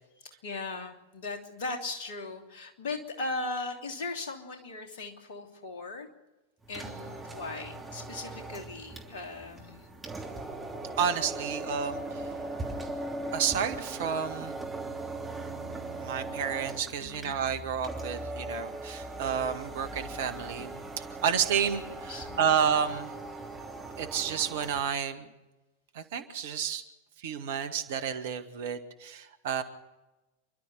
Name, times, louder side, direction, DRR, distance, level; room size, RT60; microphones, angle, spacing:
voice 1, 0.2-6.1 6.7-10.0 10.6-10.7 12.1-12.3 17.0-17.4 22.1-22.6, left 3 dB, 55° left, 3 dB, 3.0 m, -38 dB
sound 1, 6.6-24.9, right 2 dB, 10° right, 3.1 m, -39 dB
voice 2, 11.0-12.3 13.3-14.5 16.0-23.1 24.0-25.3 25.9-26.8 27.2-29.6, right 7 dB, 55° right, 11 dB, 1.7 m, -31 dB
28.5 x 12.0 x 8.2 m, 1.1 s
figure-of-eight pair, 90°, 0 cm